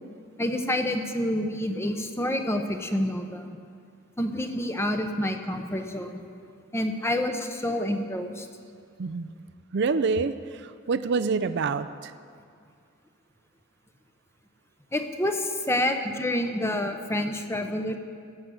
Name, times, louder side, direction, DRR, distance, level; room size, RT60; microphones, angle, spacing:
voice 1, 0.4-3.5 4.2-6.2 6.7-8.5 14.9-18.0, left 1 dB, 15° left, 6 dB, 0.8 m, -28 dB
voice 2, 9.0-9.3 9.7-12.1, right 4 dB, 60° right, 13 dB, 0.5 m, -27 dB
16.5 x 6.9 x 7.6 m, 2.2 s
head